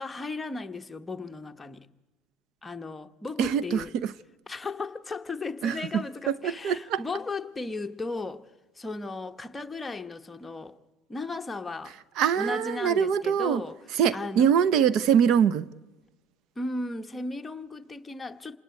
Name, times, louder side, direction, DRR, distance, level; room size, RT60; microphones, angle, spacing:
voice 1, 0.0-1.9 2.6-3.9 4.5-8.5 8.8-10.8 11.1-11.9 12.3-13.8 14.1-14.5 16.6-18.6, left 3 dB, 15° left, 1.1 m, -35 dB
voice 2, 3.4-4.1 5.6-7.0 12.2-13.6 13.9-15.7, right 8 dB, 60° right, 0.8 m, -24 dB
27.0 x 20.0 x 8.4 m
supercardioid pair, 120°, 0 cm